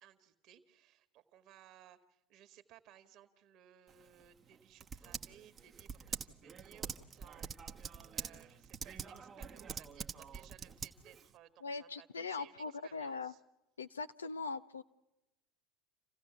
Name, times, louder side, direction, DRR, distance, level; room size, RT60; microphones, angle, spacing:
voice 1, 0.0-7.8 8.1-13.4, right 11 dB, 55° right, 10 dB, 1.8 m, -61 dB
Typing, 3.9-11.3, right 6 dB, 30° right, 1.1 m, -46 dB
voice 2, 11.6-13.3 13.8-14.8, left 4 dB, 85° left, 11 dB, 0.7 m, -41 dB
28.0 x 16.0 x 7.1 m, 0.94 s
figure-of-eight pair, 70°, 0 cm